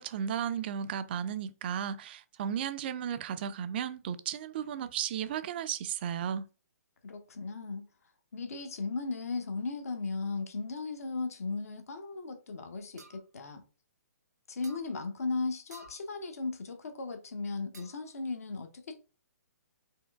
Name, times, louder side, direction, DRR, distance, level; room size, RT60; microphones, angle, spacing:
voice 1, 0.0-6.5, right 8 dB, 40° right, 0.3 m, -34 dB
voice 2, 7.0-7.9 8.3-13.6 14.5-18.9, left 3 dB, 60° left, 0.8 m, -36 dB
sound 1, 13.0-13.2 14.6-14.9 15.7-16.0 17.7-18.1, right 2 dB, 85° right, 1.0 m, -52 dB
4.5 x 3.0 x 2.3 m
figure-of-eight pair, 130°, 9 cm